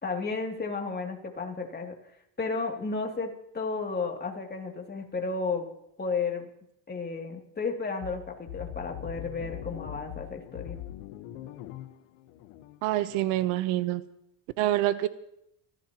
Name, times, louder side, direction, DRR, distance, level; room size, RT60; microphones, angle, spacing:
voice 1, 0.0-2.0 2.4-5.7 6.0-6.5 6.9-10.8, left 4 dB, 20° left, 1 dB, 2.7 m, -33 dB
sound 1, 8.0-13.6, left 13 dB, 80° left, 1.3 m, -42 dB
voice 2, 12.8-14.1 14.6-15.1, right 15 dB, 85° right, 13 dB, 1.0 m, -26 dB
26.0 x 15.0 x 3.0 m, 0.79 s
supercardioid pair, 105°, 44 cm